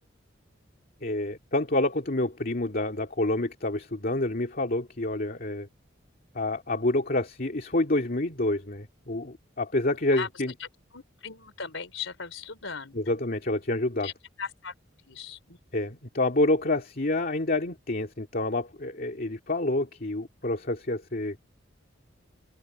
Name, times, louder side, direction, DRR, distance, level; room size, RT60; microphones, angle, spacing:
voice 1, 1.0-5.7 6.3-10.5 12.9-14.1 15.7-21.4, left 2 dB, 50° left, 2.4 m, -28 dB
voice 2, 10.9-13.0 14.0-14.1 14.4-14.7 15.1-15.6, left 6 dB, 80° left, 4.1 m, -38 dB
head